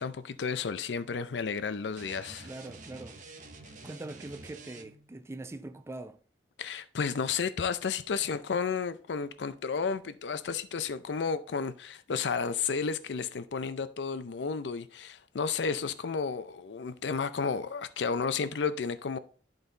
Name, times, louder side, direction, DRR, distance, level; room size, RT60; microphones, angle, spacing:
voice 1, 0.0-2.5 6.6-19.2, left 5 dB, 85° left, 0.5 m, -32 dB
sound 1, 1.9-5.2, right 3 dB, 45° right, 0.9 m, -49 dB
voice 2, 2.4-3.2 3.8-6.2, right 2 dB, 15° right, 0.3 m, -42 dB
11.0 x 4.0 x 3.9 m
head